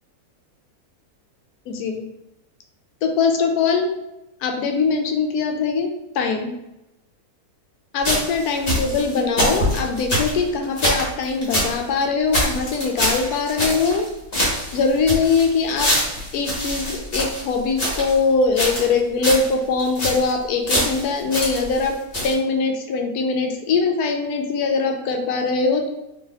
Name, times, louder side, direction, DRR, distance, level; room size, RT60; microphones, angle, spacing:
voice 1, 1.7-2.1 3.0-3.9 4.4-5.9 6.1-6.5 7.9-14.1 14.7-15.9 16.3-25.9, left 4 dB, 85° left, 4 dB, 1.1 m, -22 dB
sound 1, 8.0-11.8 12.0-12.1 12.3-14.1 14.3-18.2 18.6-19.0 19.2-19.5 19.8-20.3 20.7-21.9 22.1-22.3, equal, 40° left, 1.3 m, -24 dB
2.9 x 2.8 x 3.7 m, 0.92 s
omnidirectional pair, 1.6 m